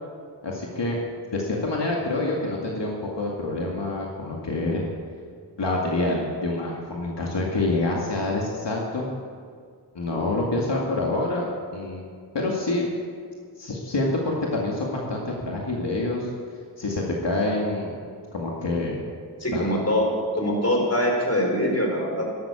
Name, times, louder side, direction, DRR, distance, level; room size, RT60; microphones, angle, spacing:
voice 1, 0.4-1.0 1.3-4.8 5.6-9.1 9.9-12.0 12.3-12.8 13.6-16.3 16.8-17.9 18.3-19.0 19.5-19.8, left 2 dB, 75° left, -2 dB, 2.2 m, -27 dB
voice 2, 19.4-20.0 20.3-22.3, equal, 35° left, 0 dB, 4.7 m, -23 dB
13.5 x 11.5 x 7.1 m, 2.1 s
wide cardioid pair, 55°, 42 cm